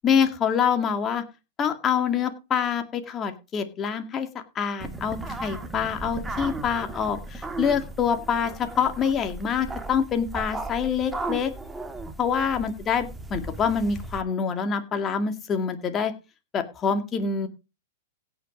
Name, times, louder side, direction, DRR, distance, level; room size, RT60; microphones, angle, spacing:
voice 1, 0.0-1.2 1.6-4.3 4.6-11.5 12.2-16.1 16.5-17.5, left 7 dB, 25° left, 8 dB, 2.1 m, -26 dB
sound 1, 4.8-14.2, right 2 dB, 10° right, 1.7 m, -36 dB
16.5 x 6.0 x 5.2 m, 0.29 s
hypercardioid pair, 110°, 0 cm